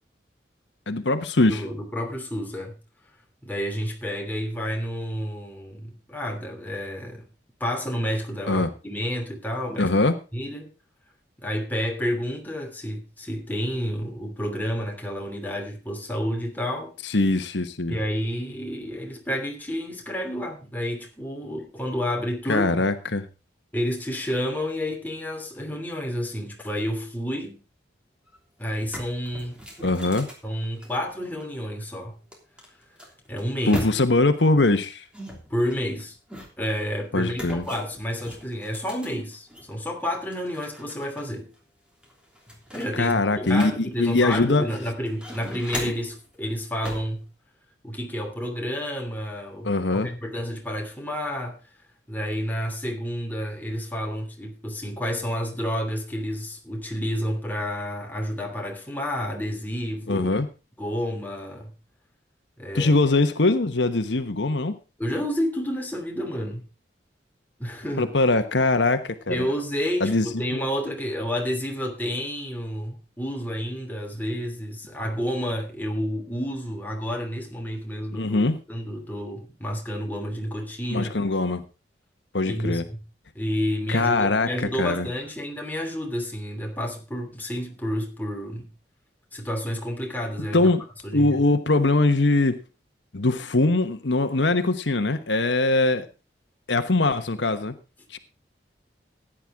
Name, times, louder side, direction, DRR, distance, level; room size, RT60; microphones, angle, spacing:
voice 1, 0.9-1.6 8.5-8.7 9.8-10.2 17.0-18.0 22.5-23.2 29.8-30.3 33.7-35.0 37.1-37.6 42.9-44.6 45.8-45.9 49.6-50.1 60.1-60.5 62.7-64.7 68.0-69.4 70.0-70.3 70.5-70.6 78.1-78.6 80.9-81.6 82.3-82.8 83.9-85.1 90.5-90.8 91.1-92.6 93.1-96.1 96.7-97.7, left 2 dB, 80° left, 1.2 m, -22 dB
voice 2, 1.5-2.8 3.4-7.3 7.6-9.9 10.3-10.7 11.4-16.9 17.9-22.8 23.7-27.6 28.6-29.6 30.4-32.2 33.3-33.8 35.5-36.2 36.6-41.5 42.7-47.3 47.8-51.6 52.1-60.3 60.8-61.7 62.6-62.9 65.0-66.6 67.6-68.1 69.3-81.2 82.4-83.0 83.3-88.7 89.3-90.7 91.0-91.3, equal, 10° left, 2.9 m, -30 dB
sound 1, 28.3-28.4 28.7-31.4 32.3-34.3 35.1-36.7 37.3-39.7 40.1-41.2 41.5-41.6 42.0-44.6 45.0-46.2 46.8-47.2, equal, 5° right, 3.2 m, -39 dB
15.5 x 10.0 x 3.6 m
head